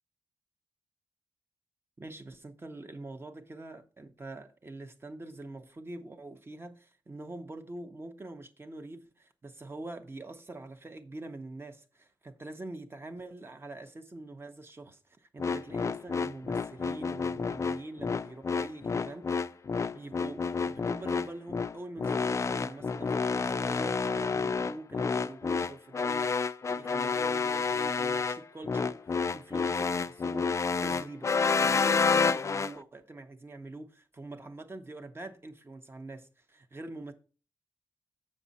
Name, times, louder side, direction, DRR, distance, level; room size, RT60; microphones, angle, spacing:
voice 1, 2.0-19.3 19.9-29.0 29.3-37.1, right 2 dB, 25° right, 0.9 m, -44 dB
sound 1, 15.4-32.7, left 5 dB, 35° left, 0.4 m, -29 dB
7.1 x 6.3 x 4.1 m
wide cardioid pair, 110°, 9 cm